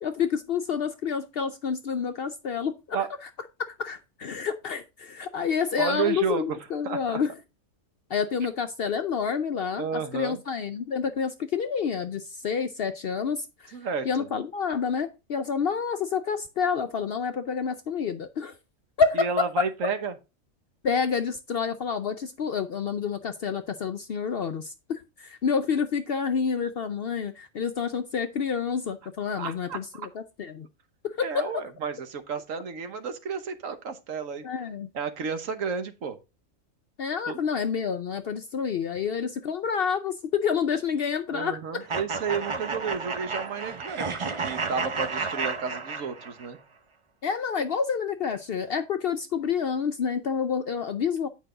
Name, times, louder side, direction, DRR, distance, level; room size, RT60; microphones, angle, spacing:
voice 1, 0.0-3.3 3.6-7.3 8.1-13.8 14.0-18.6 19.0-19.5 20.8-30.7 31.0-31.6 34.4-34.9 37.0-41.9 47.2-51.3, left 6 dB, 60° left, 0.6 m, -28 dB
voice 2, 5.8-6.6 6.8-7.2 9.8-10.4 13.7-14.3 19.2-20.1 29.4-29.8 31.2-34.5 34.9-36.2 37.3-37.4 41.3-46.6, right 5 dB, 70° right, 1.4 m, -31 dB
sound 1, 41.9-46.5, right 4 dB, 35° right, 0.5 m, -32 dB
9.1 x 5.3 x 3.8 m
omnidirectional pair, 1.4 m